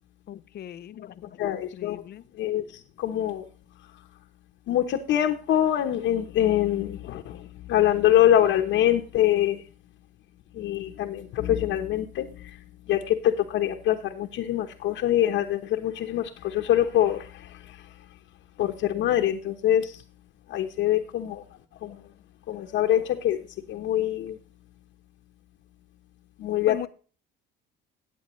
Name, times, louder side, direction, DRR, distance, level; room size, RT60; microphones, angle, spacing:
voice 1, 0.3-2.2 26.7-26.9, left 11 dB, 50° left, 15 dB, 0.7 m, -39 dB
voice 2, 1.4-2.1 2.4-3.5 4.7-9.6 10.5-12.6 12.9-17.8 18.6-20.0 20.5-21.4 21.8-22.0 22.5-23.4 23.7-24.4 26.4-26.9, left 12 dB, 70° left, 1 dB, 1.0 m, -24 dB
14.0 x 8.6 x 3.1 m, 0.38 s
supercardioid pair, 95°, 21 cm